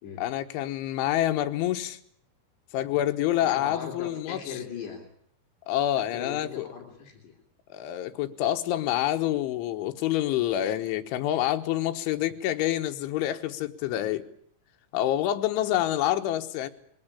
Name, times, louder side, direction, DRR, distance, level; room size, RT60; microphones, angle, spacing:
voice 1, 0.2-2.0 2.7-4.4 5.7-6.7 7.7-14.3 14.9-16.7, left 13 dB, 75° left, 6 dB, 3.5 m, -27 dB
voice 2, 3.5-5.0 6.0-7.3, left 6 dB, 60° left, 3 dB, 4.8 m, -39 dB
21.5 x 18.0 x 9.9 m, 0.63 s
omnidirectional pair, 5.8 m